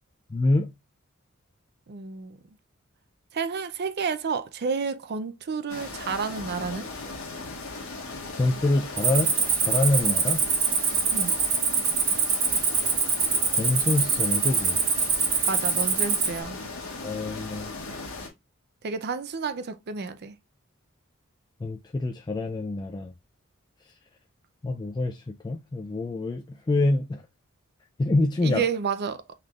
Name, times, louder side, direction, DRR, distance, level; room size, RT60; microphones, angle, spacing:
voice 1, 0.3-0.7 8.4-10.4 13.6-14.8 17.0-17.7 21.6-23.1 24.6-27.2 28.0-28.6, left 2 dB, 20° left, 0.3 m, -26 dB
voice 2, 1.9-2.4 3.3-6.9 11.1-11.4 15.5-16.6 18.8-20.3 28.4-29.2, right 5 dB, 50° right, 0.5 m, -30 dB
sound 1, 5.7-18.3, left 3 dB, 70° left, 1.4 m, -38 dB
Cricket, 9.0-16.4, right 5 dB, 30° right, 0.9 m, -24 dB
5.7 x 3.4 x 2.4 m
head